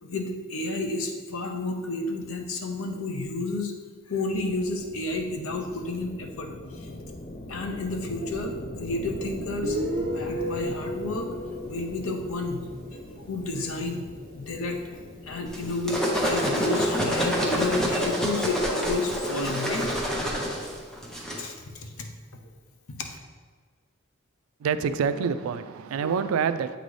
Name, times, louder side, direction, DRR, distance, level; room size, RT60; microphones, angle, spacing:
voice 1, 0.0-3.7 4.1-6.9 7.5-9.8 10.0-11.3 11.7-12.7 13.3-14.1 14.3-14.8 15.3-20.0 21.4-22.1 22.9-23.2, left 2 dB, 80° left, 3 dB, 0.7 m, -31 dB
sound 1, 4.3-17.8, left 1 dB, 35° left, 0.5 m, -41 dB
Guitar, 9.6-13.1, right 1 dB, 45° right, 1.0 m, -32 dB
sound 2, 15.5-21.4, equal, 5° left, 0.7 m, -27 dB
voice 2, 24.6-26.8, right 6 dB, 85° right, 12 dB, 0.3 m, -26 dB
8.0 x 4.0 x 3.2 m, 1.5 s
head